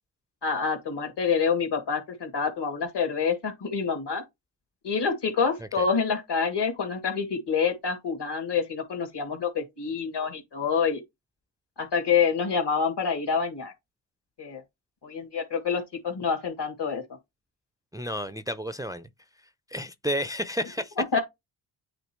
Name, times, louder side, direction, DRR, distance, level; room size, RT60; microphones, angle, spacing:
voice 1, 0.4-4.2 4.8-11.0 11.8-13.7 14.4-14.6 15.0-17.0 21.0-21.2, left 6 dB, 55° left, 2.6 m, -27 dB
voice 2, 17.9-19.1 19.7-20.9, equal, 5° right, 0.6 m, -31 dB
8.8 x 3.5 x 3.1 m
supercardioid pair, 45°, 50 cm